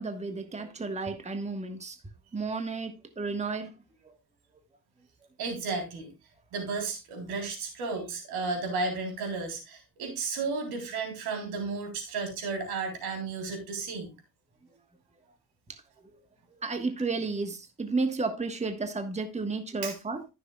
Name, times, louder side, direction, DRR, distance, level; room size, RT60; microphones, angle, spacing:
voice 1, 0.0-2.0 2.3-3.7 4.0-4.1 15.7-15.8 16.6-20.2, right 3 dB, 20° right, 1.3 m, -32 dB
voice 2, 5.4-6.1 6.5-14.1 19.8-19.9, right 4 dB, 85° right, 3.7 m, -33 dB
14.0 x 6.5 x 2.3 m
cardioid pair, 90°, 37 cm